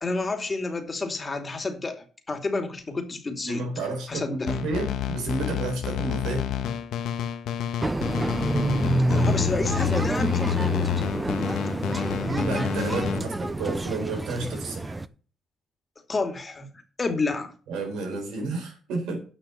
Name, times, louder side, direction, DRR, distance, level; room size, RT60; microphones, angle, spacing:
voice 1, 0.0-3.6 4.1-4.6 9.1-10.5 11.6-11.7 13.1-13.3 16.1-16.7 17.0-17.5, left 3 dB, 30° left, 6 dB, 2.5 m, -30 dB
voice 2, 3.4-6.5 12.1-15.0 17.7-19.2, right 3 dB, 90° right, 3 dB, 4.3 m, -31 dB
sound 1, 4.5-13.2, left 10 dB, 80° left, 1.5 m, -29 dB
sound 2, 7.8-15.1, right 2 dB, 15° right, 0.7 m, -28 dB
9.7 x 6.1 x 6.6 m, 0.38 s
cardioid pair, 90°, 0 cm